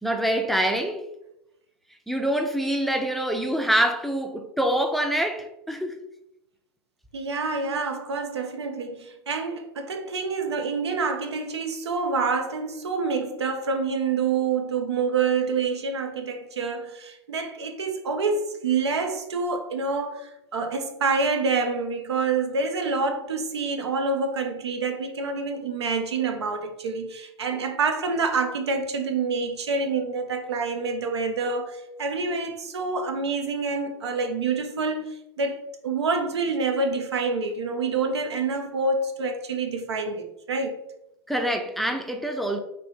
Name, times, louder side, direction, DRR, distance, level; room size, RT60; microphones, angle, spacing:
voice 1, 0.0-1.1 2.1-5.9 41.3-42.6, right 1 dB, ahead, 0.4 m, -25 dB
voice 2, 7.1-40.8, right 4 dB, 85° right, 0.6 m, -27 dB
4.0 x 2.7 x 3.6 m
hypercardioid pair, 100°, 14 cm